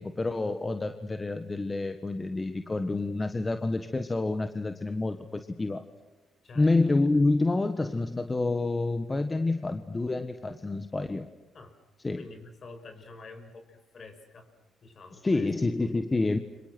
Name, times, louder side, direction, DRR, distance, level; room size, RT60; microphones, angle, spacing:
voice 1, 0.0-5.8 6.5-11.3 12.0-12.2 15.2-16.4, left 2 dB, 20° left, 8 dB, 1.5 m, -28 dB
voice 2, 12.2-14.5 14.8-15.5, left 3 dB, 50° left, 7 dB, 6.0 m, -47 dB
30.0 x 26.0 x 6.2 m, 1.1 s
cardioid pair, 90°, 0 cm